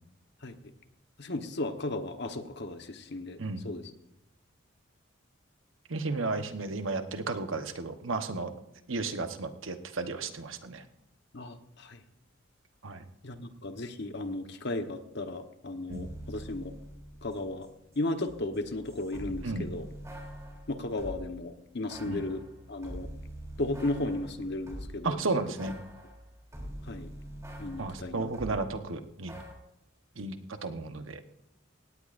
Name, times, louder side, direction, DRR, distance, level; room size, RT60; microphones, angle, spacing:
voice 1, 1.2-3.4 3.6-3.8 11.3-12.0 13.2-16.7 17.2-17.7 18.0-19.9 20.7-22.4 22.7-23.1 23.6-25.2 26.9-27.1 27.6-28.3, left 2 dB, 55° left, 7 dB, 1.1 m, -35 dB
voice 2, 5.9-8.5 8.9-10.8 12.8-13.0 15.9-16.1 19.4-19.7 22.1-22.2 25.0-25.8 27.8-29.3 30.2-31.2, right 3 dB, 75° right, 8 dB, 1.1 m, -33 dB
sound 1, 15.9-17.7 17.9-21.3 21.9-25.1 25.6-28.6 29.3-29.5, equal, 15° right, 3.2 m, -44 dB
18.0 x 17.5 x 2.6 m, 0.83 s
head